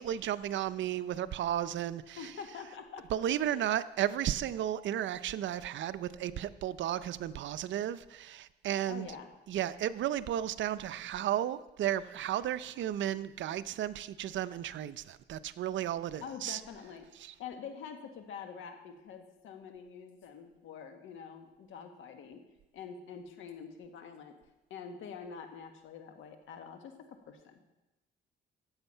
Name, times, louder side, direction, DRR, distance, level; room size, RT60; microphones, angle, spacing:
voice 1, 0.0-2.3 3.1-9.1 9.5-16.6 17.2-17.3, right 11 dB, 70° right, 15 dB, 0.6 m, -34 dB
voice 2, 2.2-3.1 3.4-3.7 8.9-9.3 16.2-17.1 17.4-22.4 22.7-24.3 24.7-27.6, left 6 dB, 80° left, 6 dB, 1.6 m, -46 dB
13.5 x 8.0 x 5.6 m, 1.0 s
cardioid pair, 90°, 20 cm